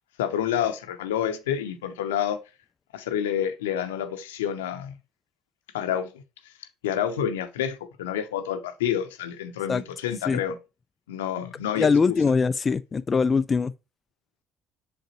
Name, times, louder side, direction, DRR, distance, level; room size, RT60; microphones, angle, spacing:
voice 1, 0.2-2.4 2.9-4.9 5.7-6.1 6.8-10.6 11.1-12.2, left 9 dB, 85° left, 0.7 m, -28 dB
voice 2, 11.8-13.7, left 5 dB, 35° left, 0.3 m, -22 dB
6.6 x 5.1 x 3.0 m
hypercardioid pair, 60°, 0 cm